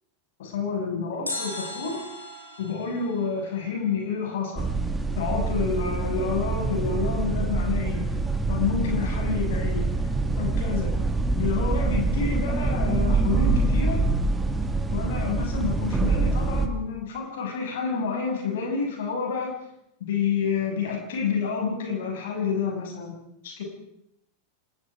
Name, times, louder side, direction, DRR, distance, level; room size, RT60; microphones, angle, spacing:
voice 1, 0.4-2.0 2.6-4.7 5.1-8.1 8.5-9.9 10.4-10.9 11.3-14.0 14.9-19.5 20.1-23.2 23.4-23.6, left 5 dB, 55° left, 2 dB, 6.7 m, -29 dB
sound 1, 1.3-4.3 4.6-4.7, left 2 dB, 80° left, 5.7 m, -38 dB
sound 2, 4.6-16.7, right 3 dB, 10° right, 2.3 m, -25 dB
26.5 x 19.5 x 5.0 m, 0.80 s
figure-of-eight pair, 90°, 0 cm